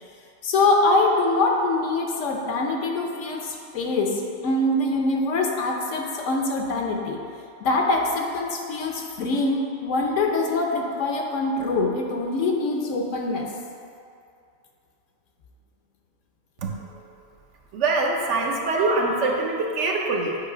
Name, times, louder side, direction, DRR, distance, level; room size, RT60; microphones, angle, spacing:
voice 1, 0.4-7.2 7.6-13.5, left 2 dB, 70° left, 1 dB, 1.0 m, -24 dB
voice 2, 17.7-20.4, right 3 dB, 65° right, 0 dB, 1.0 m, -23 dB
8.0 x 2.8 x 4.9 m, 2.5 s
omnidirectional pair, 1.4 m